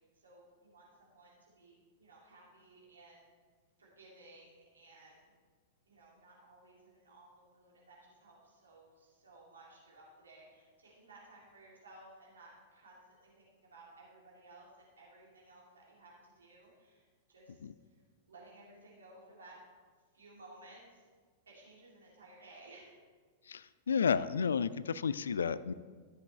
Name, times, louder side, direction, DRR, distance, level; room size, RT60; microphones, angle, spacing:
voice 1, 0.1-3.3 3.8-5.3 5.9-17.6 17.9-18.0 18.3-19.6 20.1-21.0 21.5-22.9, right 2 dB, 75° right, -5 dB, 2.6 m, -58 dB
voice 2, 23.5-25.7, left 6 dB, 70° left, 17 dB, 0.3 m, -32 dB
14.0 x 7.5 x 3.3 m, 1.5 s
figure-of-eight pair, 95°, 0 cm